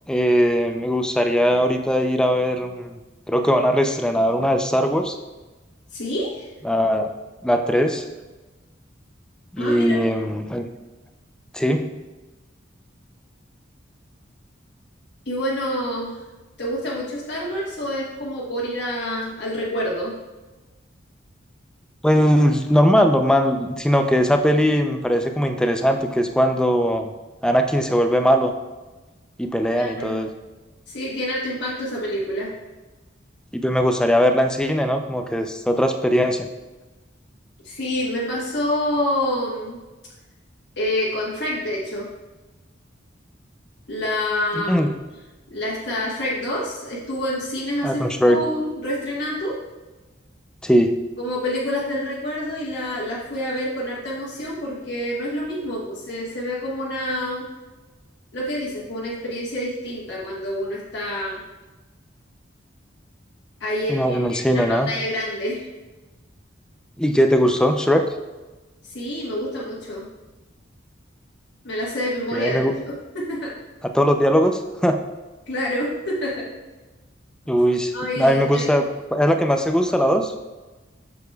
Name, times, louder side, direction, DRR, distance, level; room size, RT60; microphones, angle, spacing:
voice 1, 0.1-3.0 3.3-5.2 6.6-7.1 7.4-8.0 9.6-10.6 11.5-12.0 22.0-27.1 27.4-28.5 29.4-30.3 33.5-36.5 44.5-44.9 47.8-48.4 50.6-51.0 63.9-64.9 67.0-68.0 72.3-72.7 73.8-75.0 77.5-78.8 79.1-80.3, equal, 5° left, 5 dB, 0.4 m, -20 dB
voice 2, 5.9-6.5 9.6-10.0 15.3-16.1 16.6-20.1 29.8-30.2 30.9-32.5 37.6-39.8 40.8-42.1 43.9-44.9 45.5-49.6 51.2-57.4 58.3-61.4 63.6-65.7 68.8-70.0 71.6-72.6 72.9-73.5 75.5-76.5 77.9-78.7, left 1 dB, 60° left, -6 dB, 1.3 m, -27 dB
8.0 x 6.9 x 2.3 m, 1.2 s
head